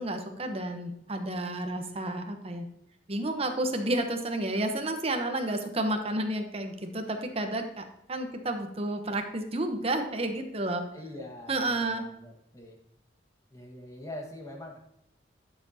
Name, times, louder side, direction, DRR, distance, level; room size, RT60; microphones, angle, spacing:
voice 1, 0.0-2.7 3.1-10.8 11.5-12.1, right 1 dB, 35° right, 5 dB, 1.0 m, -31 dB
voice 2, 10.9-12.8 13.5-14.8, left 1 dB, 20° left, 0 dB, 1.6 m, -43 dB
11.0 x 6.9 x 2.8 m, 0.81 s
head